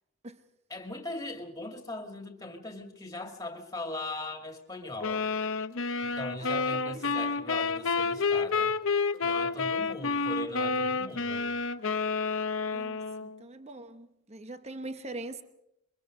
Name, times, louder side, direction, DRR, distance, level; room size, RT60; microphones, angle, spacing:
voice 1, 0.7-5.3 6.0-8.7 9.2-11.5, left 2 dB, 15° left, 2.3 m, -39 dB
sound 1, 5.0-13.4, left 4 dB, 60° left, 0.8 m, -29 dB
voice 2, 6.4-7.0 12.7-15.4, right 2 dB, 30° right, 0.9 m, -43 dB
23.0 x 23.0 x 5.2 m
head